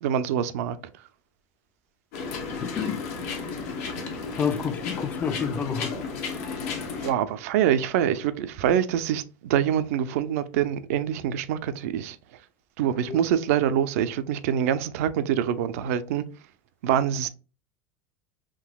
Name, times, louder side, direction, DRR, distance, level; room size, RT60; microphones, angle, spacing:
voice 1, 0.0-0.8 7.0-12.2 12.8-16.2 16.8-17.3, right 9 dB, 80° right, 0.4 m, -25 dB
sound 1, 2.1-7.1, left 4 dB, 80° left, 0.9 m, -33 dB
voice 2, 2.6-3.0 4.4-5.9 13.1-13.2, left 6 dB, 20° left, 0.4 m, -29 dB
3.7 x 2.7 x 2.2 m
supercardioid pair, 130°, 8 cm